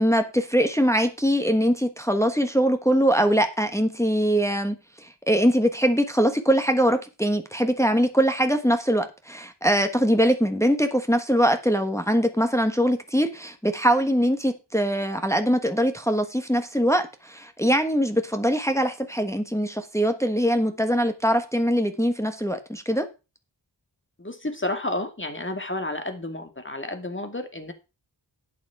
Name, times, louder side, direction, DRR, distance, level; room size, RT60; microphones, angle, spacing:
voice 1, 0.0-4.8 5.0-23.1, equal, 5° left, 1.3 m, -22 dB
voice 2, 24.2-27.7, left 1 dB, 25° left, 2.3 m, -31 dB
11.5 x 8.6 x 4.8 m
wide cardioid pair, 65°, 45 cm